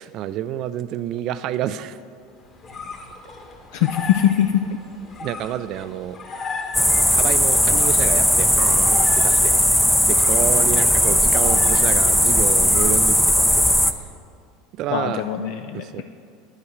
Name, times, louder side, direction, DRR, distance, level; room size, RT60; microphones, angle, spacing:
voice 1, 0.0-2.0 5.2-6.2 7.1-9.5 10.1-13.7 14.8-15.2 15.7-16.0, right 11 dB, 50° right, 14 dB, 0.3 m, -28 dB
sound 1, 2.3-13.4, left 4 dB, 40° left, 1.7 m, -37 dB
voice 2, 3.7-4.5 14.9-16.0, left 11 dB, 65° left, 6 dB, 0.4 m, -22 dB
sound 2, 6.7-13.9, equal, 5° left, 0.5 m, -17 dB
9.8 x 4.7 x 7.8 m, 2.4 s
hypercardioid pair, 80°, 0 cm